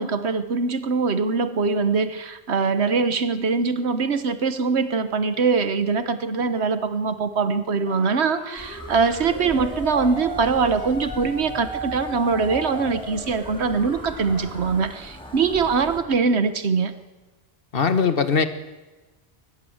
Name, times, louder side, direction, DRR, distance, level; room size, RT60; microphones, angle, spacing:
voice 1, 0.0-16.9, right 5 dB, 85° right, 11 dB, 1.4 m, -23 dB
sound 1, 7.9-15.1, equal, 85° left, 7.7 m, -36 dB
sound 2, 8.6-16.0, left 1 dB, 5° left, 3.8 m, -40 dB
voice 2, 17.7-18.5, left 5 dB, 60° left, 11 dB, 1.5 m, -20 dB
22.0 x 20.0 x 7.9 m, 1.2 s
omnidirectional pair, 1.1 m